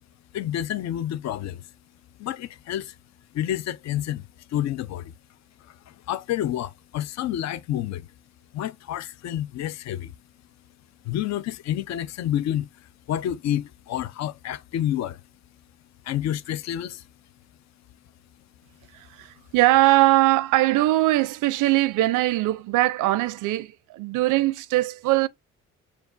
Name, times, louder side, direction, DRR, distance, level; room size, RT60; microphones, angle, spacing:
voice 1, 0.3-1.6 2.2-2.9 3.3-5.1 5.6-8.1 8.5-10.1 11.0-15.2 16.0-17.0, left 11 dB, 60° left, 0.5 m, -29 dB
voice 2, 19.5-25.3, right 17 dB, 90° right, 0.5 m, -21 dB
6.7 x 2.4 x 2.4 m
cardioid pair, 90°, 30 cm